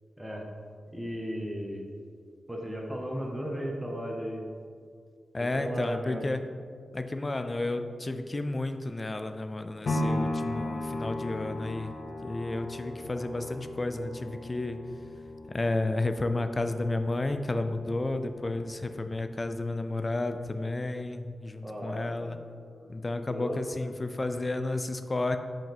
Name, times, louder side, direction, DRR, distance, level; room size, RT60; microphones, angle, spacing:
voice 1, 0.2-0.5 0.9-1.9 2.5-4.5 5.4-6.3 21.6-23.9, equal, 15° right, -1 dB, 1.0 m, -36 dB
voice 2, 5.3-6.4 6.9-12.0 12.2-14.8 15.5-22.4 22.9-25.4, left 2 dB, 35° left, 8 dB, 0.4 m, -32 dB
sound 1, 9.9-18.0 18.4-18.5, left 1 dB, 70° left, 0.7 m, -36 dB
5.8 x 5.2 x 3.5 m, 2.1 s
cardioid pair, 45°, 0 cm